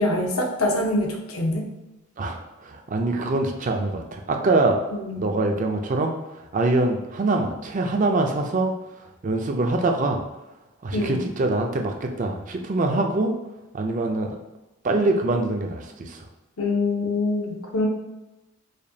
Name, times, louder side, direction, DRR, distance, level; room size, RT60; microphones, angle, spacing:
voice 1, 0.0-1.7 4.9-5.3 10.9-11.2 16.6-17.9, left 2 dB, 80° left, 1 dB, 0.7 m, -24 dB
voice 2, 2.2-4.8 5.2-6.1 6.5-8.7 9.2-10.2 10.8-13.4 13.7-14.4 14.8-16.2, right 2 dB, 35° right, 3 dB, 0.4 m, -24 dB
5.0 x 2.2 x 2.7 m, 1.0 s
head